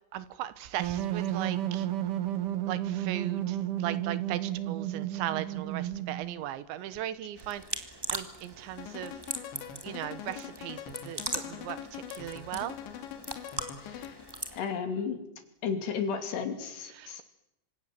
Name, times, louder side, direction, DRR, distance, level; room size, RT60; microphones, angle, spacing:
voice 1, 0.1-1.9 2.7-7.6 8.1-9.1 9.8-10.8 11.1-12.8 17.0-17.2, right 12 dB, 85° right, 15 dB, 3.5 m, -37 dB
sound 1, 0.8-6.4, right 12 dB, 65° right, 2.3 m, -32 dB
sound 2, 7.4-14.6, right 1 dB, 15° right, 0.8 m, -40 dB
sound 3, 8.8-14.4, left 9 dB, 85° left, 3.9 m, -43 dB
voice 2, 13.8-14.2 14.5-15.2 15.6-17.2, left 6 dB, 70° left, 7 dB, 4.7 m, -33 dB
26.5 x 26.5 x 7.7 m, 0.89 s
omnidirectional pair, 5.1 m